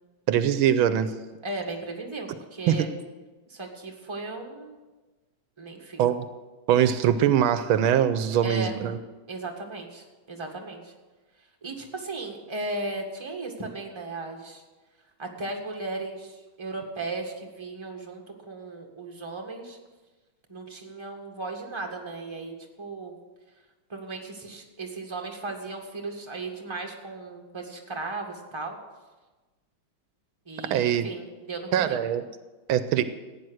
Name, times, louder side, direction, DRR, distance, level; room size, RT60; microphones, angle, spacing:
voice 1, 0.3-1.2 2.7-2.9 6.0-6.3 6.7-9.0 30.6-31.1 31.7-32.3 32.7-33.0, right 9 dB, 85° right, 11 dB, 1.5 m, -22 dB
voice 2, 1.4-2.9 3.5-4.9 5.6-6.0 8.4-8.8 9.3-10.9 11.6-14.6 15.2-19.8 20.5-23.1 23.9-28.8 30.5-32.0, right 3 dB, 15° right, 1 dB, 1.7 m, -36 dB
15.5 x 9.3 x 6.4 m, 1.2 s
omnidirectional pair, 2.2 m